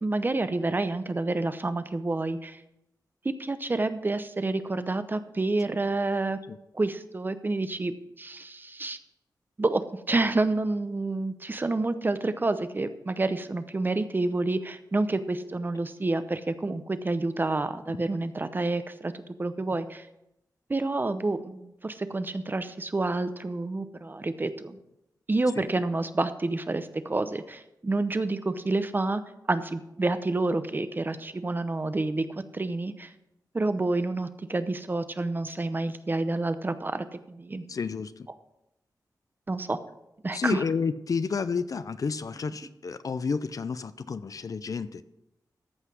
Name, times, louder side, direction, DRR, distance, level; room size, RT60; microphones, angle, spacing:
voice 1, 0.0-2.6 3.2-6.4 6.7-9.0 9.6-19.1 19.4-20.1 20.7-24.8 25.3-29.2 29.5-32.3 32.5-33.1 33.5-37.6 39.5-39.8 40.2-40.6, right 2 dB, 30° right, 11 dB, 0.7 m, -28 dB
voice 2, 37.7-38.3 40.3-45.0, left 5 dB, 55° left, 14 dB, 0.5 m, -30 dB
14.0 x 5.7 x 6.2 m, 0.86 s
wide cardioid pair, 125°, 7 cm